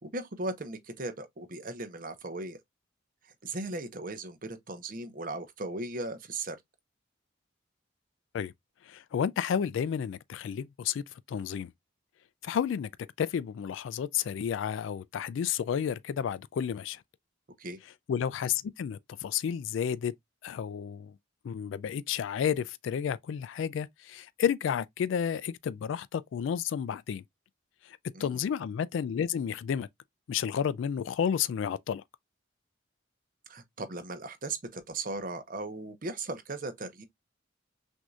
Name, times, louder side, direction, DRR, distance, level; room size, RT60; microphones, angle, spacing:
voice 1, 0.0-2.6 3.2-6.6 17.6-17.8 28.1-28.4 33.5-37.0, right 2 dB, 45° right, 0.8 m, -37 dB
voice 2, 8.8-11.7 12.4-12.9 13.2-17.0 18.1-20.1 20.4-21.2 21.4-27.2 27.8-29.9 30.3-32.0, left 8 dB, 75° left, 0.3 m, -31 dB
6.1 x 2.7 x 2.3 m
head